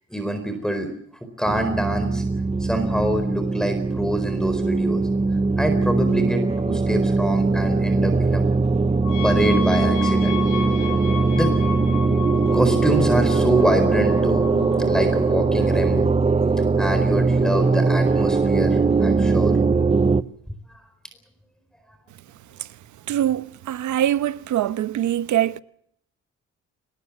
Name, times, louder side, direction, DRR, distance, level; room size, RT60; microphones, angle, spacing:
voice 1, 0.1-0.9 1.4-2.2 2.6-5.0 5.6-8.4 9.2-10.4 11.3-11.6 12.5-14.5 14.9-16.1 16.8-19.6 20.7-20.8, right 1 dB, ahead, 4.3 m, -25 dB
sound 1, 1.4-20.2, right 3 dB, 20° right, 0.9 m, -20 dB
sound 2, 9.0-15.5, left 7 dB, 85° left, 6.1 m, -33 dB
voice 2, 23.1-25.6, right 12 dB, 75° right, 1.0 m, -23 dB
23.0 x 20.5 x 7.3 m
cardioid pair, 90°, 30 cm